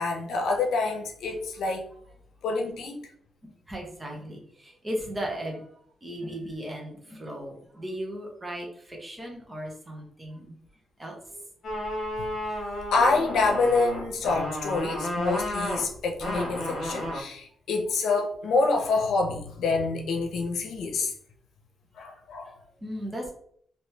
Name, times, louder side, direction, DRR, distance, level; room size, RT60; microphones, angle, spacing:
voice 1, 0.0-1.9 2.4-3.0 12.9-21.1 22.0-22.5, left 3 dB, 80° left, 2 dB, 0.7 m, -27 dB
voice 2, 3.4-5.7 6.0-10.5 11.0-11.1 22.8-23.3, equal, 15° right, 0 dB, 0.9 m, -36 dB
sound 1, 11.6-17.2, left 1 dB, 45° left, 1.2 m, -32 dB
3.1 x 2.9 x 3.2 m, 0.63 s
cardioid pair, 145°, 0 cm